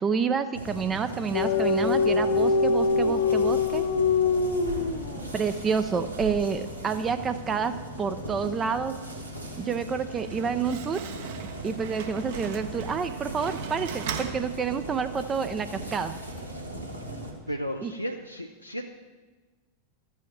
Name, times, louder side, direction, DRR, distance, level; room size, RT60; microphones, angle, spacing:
voice 1, 0.0-3.8 5.3-9.0 9.6-11.0 11.6-16.1 17.8-17.9, right 6 dB, 20° right, 9 dB, 0.4 m, -29 dB
sound 1, 0.5-17.3, right 1 dB, 85° right, 1.5 m, -38 dB
sound 2, 1.3-5.4, left 4 dB, 50° left, 0.8 m, -24 dB
Slam, 10.0-15.1, right 7 dB, 50° right, 0.9 m, -39 dB
voice 2, 17.5-18.8, equal, 90° left, 3 dB, 0.5 m, -34 dB
13.5 x 8.3 x 3.2 m, 1.3 s
figure-of-eight pair, 90°, 0 cm